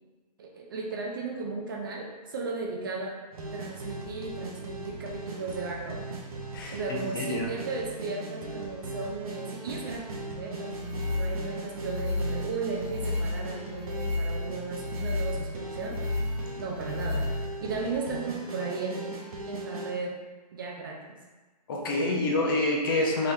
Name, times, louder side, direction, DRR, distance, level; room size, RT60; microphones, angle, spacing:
voice 1, 0.4-3.1 3.5-6.1 6.7-16.0 16.6-17.3 17.6-19.1 19.5-20.2 20.5-21.0 21.8-22.4, right 4 dB, 30° right, -1 dB, 0.4 m, -35 dB
sound 1, 3.3-19.9, right 2 dB, 55° right, 0.8 m, -39 dB
voice 2, 6.5-7.5 21.7-23.3, left 2 dB, 30° left, 0 dB, 0.5 m, -27 dB
sound 2, 10.7-17.8, left 2 dB, 15° right, 0.9 m, -32 dB
3.8 x 2.9 x 2.6 m, 1.3 s
hypercardioid pair, 155°, 21 cm